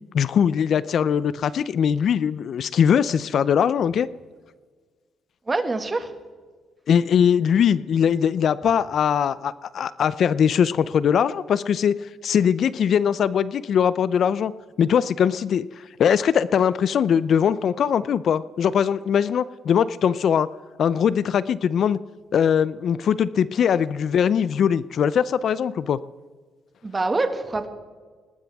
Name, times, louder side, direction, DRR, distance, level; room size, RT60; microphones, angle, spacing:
voice 1, 0.1-4.1 6.9-14.5 14.8-15.7 16.0-20.5 20.8-22.0 22.3-26.0, left 8 dB, 60° left, 17 dB, 0.4 m, -21 dB
voice 2, 5.5-6.1 26.8-27.7, right 3 dB, 25° right, 7 dB, 1.9 m, -25 dB
21.0 x 19.0 x 3.5 m, 1.5 s
cardioid pair, 90°, 0 cm